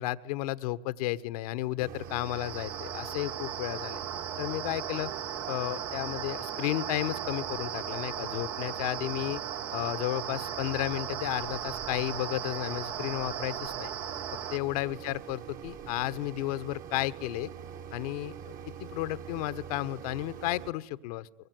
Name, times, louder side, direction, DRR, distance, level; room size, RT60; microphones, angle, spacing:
voice 1, 0.0-4.0 4.4-5.1 5.5-9.4 9.7-13.9 14.5-17.5 17.9-18.5 18.8-21.3, left 16 dB, 75° left, 14 dB, 1.2 m, -33 dB
Mechanisms, 1.8-20.7, right 8 dB, 45° right, 2.0 m, -44 dB
sound 1, 2.0-14.6, right 9 dB, 70° right, 1.9 m, -37 dB
25.5 x 23.0 x 9.3 m, 0.88 s
hypercardioid pair, 85°, 19 cm